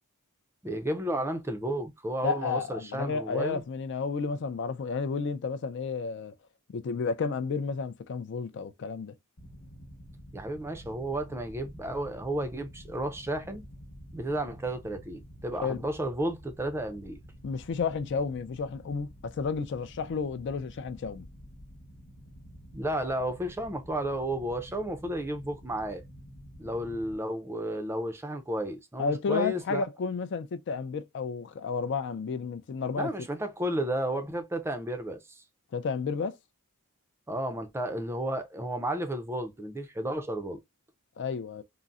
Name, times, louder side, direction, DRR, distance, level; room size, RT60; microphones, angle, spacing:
voice 1, 0.6-3.6 10.3-13.6 14.1-17.2 22.7-26.0 26.6-29.8 33.0-35.4 37.3-40.6, right 1 dB, 10° right, 0.4 m, -32 dB
voice 2, 2.2-6.3 6.7-9.1 15.6-15.8 17.4-21.3 29.0-33.1 35.7-36.3 41.2-41.6, left 5 dB, 55° left, 0.4 m, -31 dB
sound 1, 9.4-27.1, equal, 90° left, 1.0 m, -49 dB
3.8 x 2.0 x 2.3 m
head